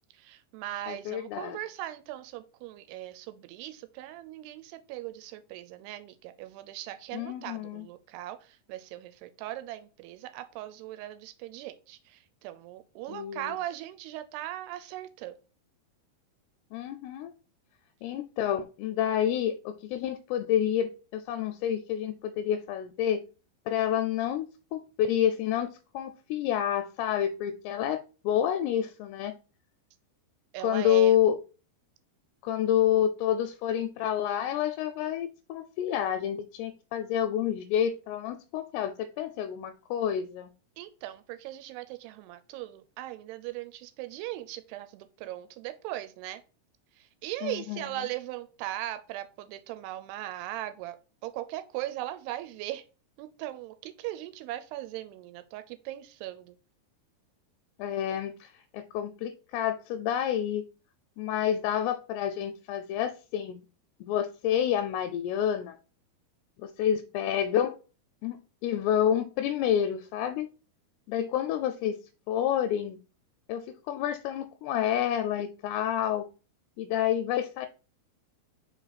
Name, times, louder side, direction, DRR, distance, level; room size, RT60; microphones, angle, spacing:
voice 1, 0.1-15.4 30.5-31.2 40.8-46.4 47.0-51.0 51.2-52.8 53.2-56.6, right 14 dB, 85° right, 11 dB, 2.5 m, -39 dB
voice 2, 0.9-1.6 7.1-7.9 13.1-13.6 16.7-17.3 18.0-23.2 23.7-25.7 25.9-29.3 30.6-31.4 32.4-40.5 47.4-47.8 57.8-60.6 61.2-63.7 64.0-65.8 66.6-67.8 68.2-70.5 71.1-72.0 72.3-73.0 73.5-76.3 76.8-77.7, left 10 dB, 85° left, 7 dB, 2.6 m, -29 dB
5.3 x 4.6 x 4.0 m, 0.34 s
omnidirectional pair, 4.8 m